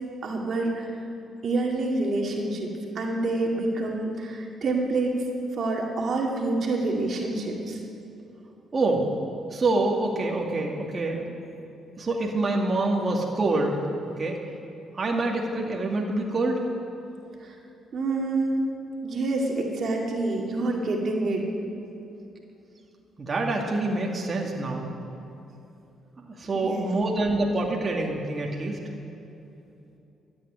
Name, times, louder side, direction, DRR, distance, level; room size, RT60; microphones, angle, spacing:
voice 1, 0.2-0.9 1.4-5.1 5.5-7.8 17.4-17.5 17.9-18.7 19.0-21.5 26.6-26.9, right 2 dB, 55° right, 0 dB, 2.1 m, -27 dB
voice 2, 8.7-9.1 9.5-11.2 12.0-13.8 14.2-14.4 14.9-16.6 23.2-24.9 26.2-28.8, right 2 dB, 35° right, -1 dB, 2.1 m, -26 dB
13.0 x 9.0 x 9.5 m, 2.8 s
cardioid pair, 90°, 0 cm